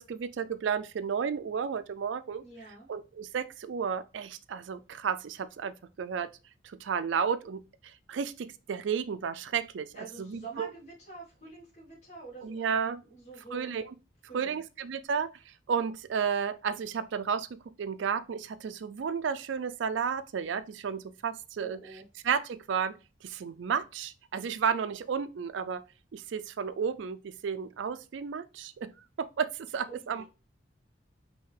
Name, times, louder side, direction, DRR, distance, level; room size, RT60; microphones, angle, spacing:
voice 1, 0.0-2.4 2.9-6.3 6.6-9.9 10.2-10.7 12.4-13.0 13.5-13.8 14.3-17.5 17.8-21.8 22.2-22.9 23.2-25.8 26.1-28.9 29.2-30.2, right 6 dB, 70° right, 0.4 m, -32 dB
voice 2, 2.4-2.9 9.9-12.7 13.1-13.8 14.3-14.6 21.6-22.1 29.9-30.2, right 3 dB, 35° left, 1.5 m, -46 dB
5.5 x 2.8 x 3.2 m
head